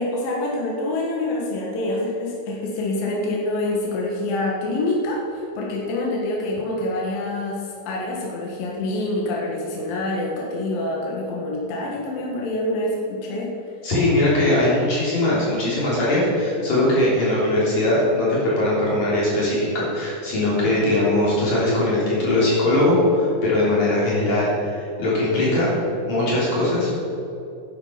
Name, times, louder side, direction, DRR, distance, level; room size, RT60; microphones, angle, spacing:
voice 1, 0.0-13.5, left 2 dB, 60° left, -3 dB, 2.8 m, -26 dB
voice 2, 13.8-25.7 26.1-26.9, left 1 dB, 40° left, -7 dB, 4.3 m, -20 dB
10.5 x 10.0 x 5.8 m, 2.8 s
omnidirectional pair, 5.4 m